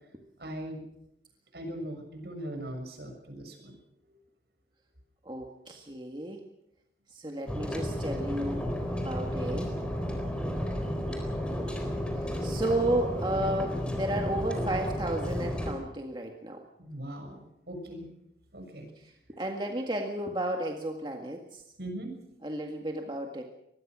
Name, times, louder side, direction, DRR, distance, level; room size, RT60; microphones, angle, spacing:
voice 1, 0.4-0.8 1.5-3.7 16.8-18.1 18.5-18.9 21.8-22.1, right 1 dB, 65° right, 4 dB, 6.7 m, -40 dB
voice 2, 5.3-6.4 7.1-9.7 12.2-16.6 19.3-21.6 22.4-23.4, right 1 dB, 25° right, 2 dB, 1.8 m, -33 dB
sound 1, 7.5-15.7, equal, 5° left, 4.0 m, -32 dB
24.5 x 20.5 x 6.3 m, 0.82 s
head